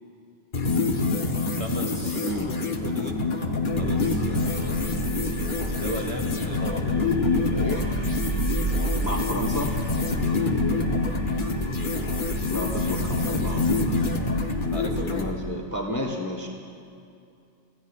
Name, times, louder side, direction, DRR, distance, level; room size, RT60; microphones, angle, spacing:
sound 1, 0.5-15.3, left 3 dB, 50° left, 1.1 m, -26 dB
voice 1, 1.5-2.4 2.8-3.3 3.8-5.3 5.8-7.1 10.2-10.5 14.7-15.2, right 1 dB, 30° right, 0 dB, 1.7 m, -37 dB
sound 2, 3.6-15.4, right 2 dB, 55° right, 2.6 m, -32 dB
voice 2, 7.5-7.8 9.0-9.7 12.5-13.6 15.1-16.5, left 1 dB, 15° left, 1 dB, 1.1 m, -31 dB
26.0 x 16.0 x 2.4 m, 2.5 s
omnidirectional pair, 1.1 m